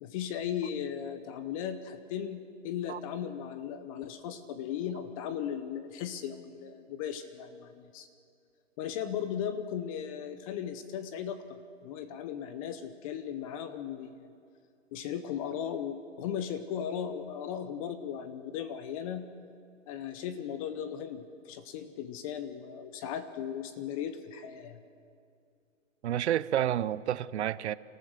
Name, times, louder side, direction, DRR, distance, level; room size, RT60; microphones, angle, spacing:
voice 1, 0.0-8.1 8.8-14.3 14.9-19.3 19.9-24.8, left 9 dB, 25° left, 11 dB, 0.8 m, -37 dB
voice 2, 26.0-27.7, right 11 dB, 60° right, 18 dB, 0.7 m, -29 dB
28.5 x 14.5 x 6.5 m, 2.4 s
hypercardioid pair, 145°, 39 cm